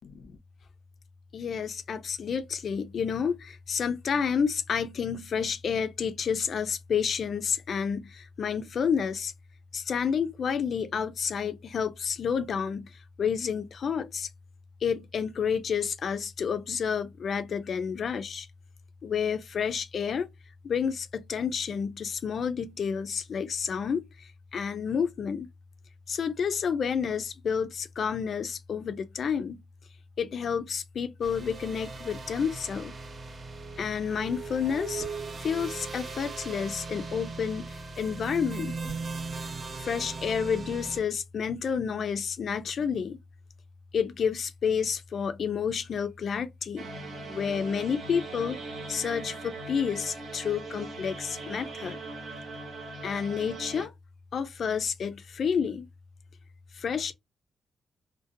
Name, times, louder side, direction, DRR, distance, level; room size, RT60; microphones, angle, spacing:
voice 1, 0.0-0.4 1.3-9.3 9.7-14.3 14.8-18.5 19.0-20.3 20.6-25.5 26.1-29.6 30.2-33.0 33.8-35.1 35.4-38.8 39.8-43.2 43.9-46.9 47.3-48.6 48.9-52.0 53.0-53.9 54.3-55.9 56.7-57.1, left 6 dB, 55° left, 0.3 m, -30 dB
sound 1, 31.2-41.0, right 4 dB, 35° right, 0.4 m, -38 dB
sound 2, 46.8-53.9, right 2 dB, 65° right, 0.9 m, -40 dB
2.5 x 2.1 x 2.5 m
wide cardioid pair, 150°, 0 cm